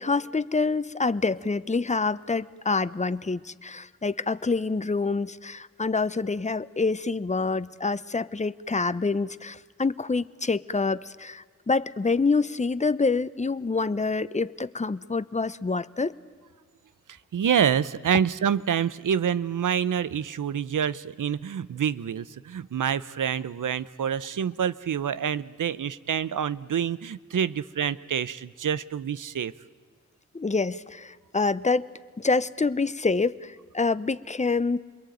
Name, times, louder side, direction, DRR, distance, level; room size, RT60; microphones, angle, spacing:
voice 1, 0.0-16.1 30.3-31.9 32.2-34.8, left 4 dB, 25° left, 15 dB, 0.8 m, -26 dB
voice 2, 17.3-29.5, right 8 dB, 85° right, 17 dB, 0.8 m, -27 dB
27.5 x 22.0 x 9.3 m, 1.5 s
cardioid pair, 60°, 30 cm